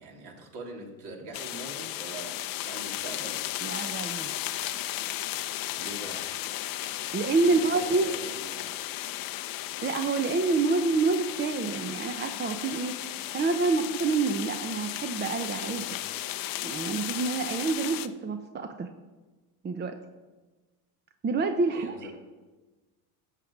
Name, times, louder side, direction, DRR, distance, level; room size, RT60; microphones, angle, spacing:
voice 1, 0.0-3.4 5.8-6.3 7.4-8.8 15.7-15.9 21.7-22.2, right 3 dB, 60° right, 0 dB, 3.3 m, -42 dB
sound 1, 1.3-18.1, left 14 dB, 50° left, 0.7 m, -35 dB
voice 2, 3.6-4.3 7.1-8.1 9.8-13.0 13.3-15.8 16.6-18.9 19.6-20.0 21.2-22.1, right 4 dB, 25° right, 7 dB, 0.8 m, -27 dB
14.0 x 5.2 x 7.3 m, 1.2 s
supercardioid pair, 95°, 45 cm